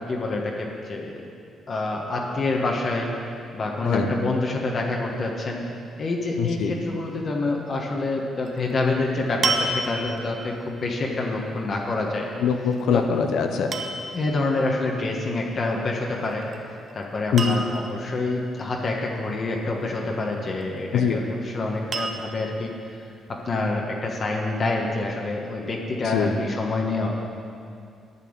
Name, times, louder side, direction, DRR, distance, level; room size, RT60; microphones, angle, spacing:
voice 1, 0.1-1.3 1.7-3.1 3.5-5.6 6.0-12.3 12.9-13.0 14.1-23.0 23.3-27.1, left 2 dB, 45° left, -1 dB, 1.5 m, -27 dB
voice 2, 6.4-6.7 12.4-13.7 17.3-17.6 20.9-21.2 26.0-26.3, left 6 dB, 80° left, 5 dB, 0.9 m, -23 dB
sound 1, 8.5-8.7 9.4-10.3 12.7-13.1 13.7-14.2 16.2-16.6 16.9-17.0 17.4-18.0 20.3-20.9 21.9-22.5 23.3-23.4, right 3 dB, 50° right, 0.9 m, -29 dB
11.0 x 5.9 x 8.9 m, 2.4 s
cardioid pair, 90°, 0 cm